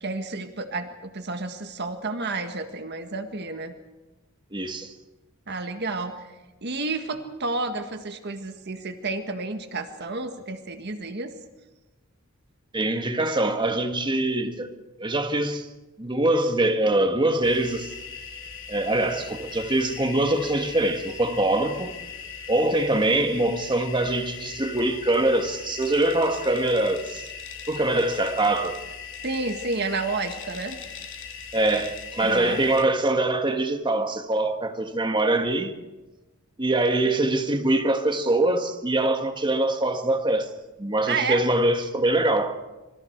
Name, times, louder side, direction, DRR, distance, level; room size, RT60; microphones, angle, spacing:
voice 1, 0.0-3.7 5.5-6.2 6.6-11.3 29.2-30.8 32.2-32.6 41.1-41.5, right 3 dB, 55° right, 1.6 m, -30 dB
voice 2, 4.5-4.9 12.7-14.7 15.0-15.7 16.0-17.9 18.7-21.9 22.5-27.2 27.7-28.8 31.5-35.7 36.6-40.5 40.8-42.5, right 2 dB, 20° right, 1.8 m, -23 dB
sound 1, 17.4-32.8, left 6 dB, 60° left, 3.1 m, -40 dB
26.0 x 24.5 x 4.6 m
head